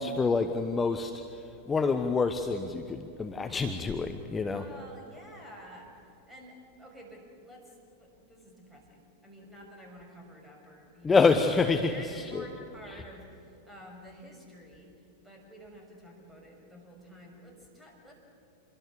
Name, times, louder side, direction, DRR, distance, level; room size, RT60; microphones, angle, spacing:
voice 1, 0.0-4.6 11.0-12.4, left 4 dB, 15° left, 7 dB, 1.1 m, -27 dB
voice 2, 4.3-11.2 11.8-14.9 15.2-18.2, equal, 5° right, 0 dB, 6.4 m, -50 dB
27.0 x 22.5 x 7.1 m, 2.7 s
figure-of-eight pair, 90°, 0 cm